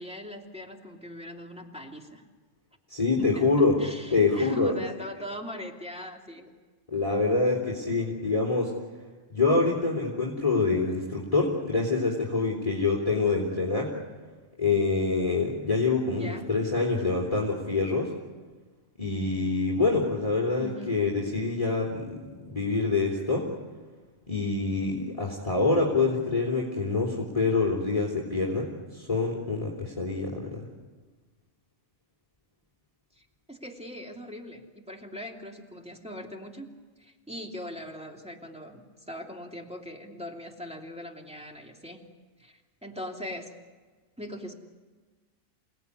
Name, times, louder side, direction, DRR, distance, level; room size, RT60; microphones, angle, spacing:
voice 1, 0.0-2.2 3.2-6.5 16.1-16.6 20.6-21.0 33.1-36.7 37.0-42.0 42.4-43.6 44.2-44.5, equal, 5° right, 0 dB, 2.9 m, -41 dB
voice 2, 2.9-3.8 4.1-4.7 6.9-8.7 9.3-13.9 14.6-18.1 19.0-23.5 24.3-30.6, left 3 dB, 25° left, -3 dB, 3.4 m, -26 dB
29.0 x 18.5 x 9.7 m, 1.4 s
omnidirectional pair, 1.4 m